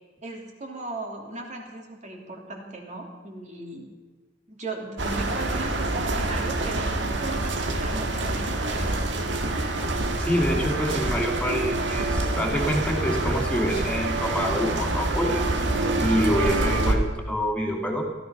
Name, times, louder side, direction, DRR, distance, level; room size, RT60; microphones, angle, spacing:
voice 1, 0.2-3.9 4.5-9.0, right 2 dB, 40° right, 1 dB, 3.1 m, -37 dB
sound 1, 5.0-16.9, right 2 dB, 70° right, 1.7 m, -26 dB
voice 2, 10.2-15.4 16.0-18.0, equal, 5° left, 0 dB, 2.7 m, -26 dB
17.0 x 13.5 x 5.8 m, 1.4 s
head